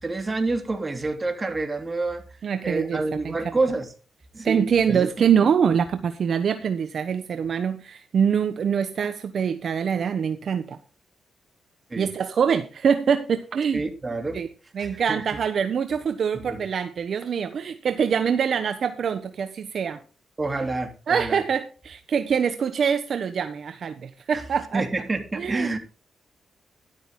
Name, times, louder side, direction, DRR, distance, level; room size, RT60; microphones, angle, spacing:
voice 1, 0.0-2.2 2.6-3.9 4.3-5.1 11.9-12.1 13.7-14.4 14.8-15.4 16.3-16.6 20.4-21.4 24.3-24.4 24.7-25.8, right 3 dB, 30° right, 3.4 m, -28 dB
voice 2, 2.4-3.3 4.4-10.8 12.0-13.8 14.3-14.5 14.7-20.0 21.1-24.8 25.3-25.8, right 7 dB, 65° right, 1.1 m, -24 dB
12.5 x 12.0 x 3.8 m
cardioid pair, 65°, 0 cm